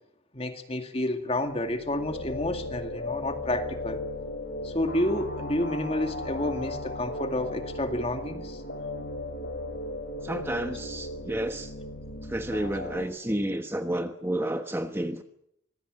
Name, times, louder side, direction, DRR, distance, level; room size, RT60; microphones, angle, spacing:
voice 1, 0.3-4.0 4.6-8.6, left 1 dB, 30° left, 6 dB, 2.3 m, -30 dB
sound 1, 1.6-13.0, left 1 dB, 55° left, 3.6 m, -36 dB
voice 2, 10.2-11.7 12.2-15.2, right 1 dB, 10° right, 7 dB, 1.1 m, -31 dB
25.5 x 19.5 x 7.8 m, 0.75 s
head